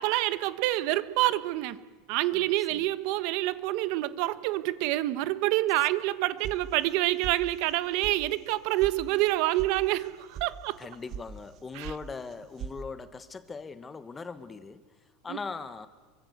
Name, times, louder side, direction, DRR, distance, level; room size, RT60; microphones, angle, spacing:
voice 1, 0.0-1.8 2.1-10.8 11.7-11.9 15.3-15.4, right 17 dB, 55° right, 1.3 m, -27 dB
voice 2, 2.3-2.9 10.8-14.8 15.2-15.9, left 4 dB, 15° left, 1.3 m, -40 dB
sound 1, 6.4-7.0 7.2-7.7 8.0-8.1 8.5-8.9 9.2-9.7 10.0-10.5 10.8-11.2 11.5-12.0 12.3-12.8, right 8 dB, 40° right, 1.4 m, -40 dB
28.0 x 24.0 x 8.1 m
supercardioid pair, 155°, 0 cm